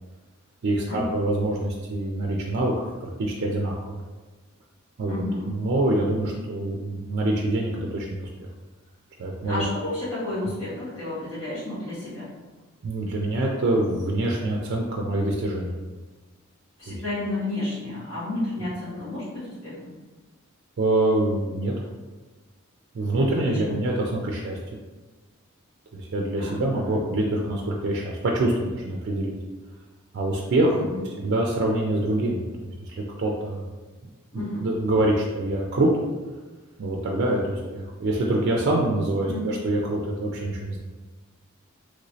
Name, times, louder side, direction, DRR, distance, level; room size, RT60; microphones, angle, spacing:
voice 1, 0.6-4.0 5.0-8.3 9.2-9.6 12.8-15.8 16.9-17.0 20.8-21.7 22.9-24.6 25.9-29.3 30.1-30.9 31.2-33.7 34.6-35.9 36.8-40.8, right 1 dB, 55° right, -1 dB, 0.4 m, -25 dB
voice 2, 5.0-5.5 9.5-12.2 16.8-19.9 23.1-23.8 26.4-27.0 30.7-31.1 34.3-34.7 39.3-39.5, left 2 dB, 80° left, -12 dB, 1.3 m, -31 dB
3.0 x 3.0 x 2.7 m, 1.3 s
head